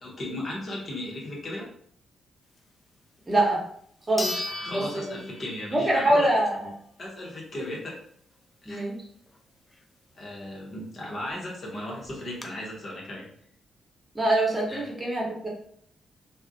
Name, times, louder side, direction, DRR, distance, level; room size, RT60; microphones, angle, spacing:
voice 1, 0.0-1.7 4.3-6.5 7.0-7.9 8.6-8.8 10.1-13.3 14.7-14.8, left 1 dB, 50° left, -3 dB, 0.8 m, -36 dB
sound 1, 3.3-3.4 4.2-5.9 6.3-6.4 11.0-11.1 11.3-11.4 12.0-12.5, left 2 dB, 25° left, 0.5 m, -35 dB
voice 2, 3.3-3.6 4.1-4.3 4.7-5.3 5.7-6.6 8.7-9.0 14.1-15.5, right 1 dB, 20° right, -3 dB, 1.0 m, -24 dB
2.3 x 2.1 x 2.6 m, 0.64 s
hypercardioid pair, 50°, 0 cm